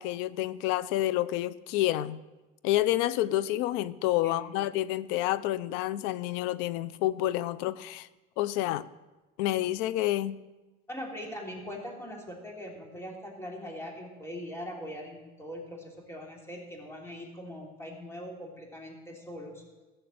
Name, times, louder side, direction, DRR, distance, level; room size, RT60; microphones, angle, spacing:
voice 1, 0.0-2.2 2.6-8.1 8.4-8.8 9.4-10.4, left 14 dB, 80° left, 18 dB, 0.6 m, -29 dB
voice 2, 4.2-4.7 10.9-19.6, equal, 15° left, 0 dB, 3.2 m, -41 dB
14.5 x 6.6 x 8.5 m, 1.1 s
cardioid pair, 120°, 19 cm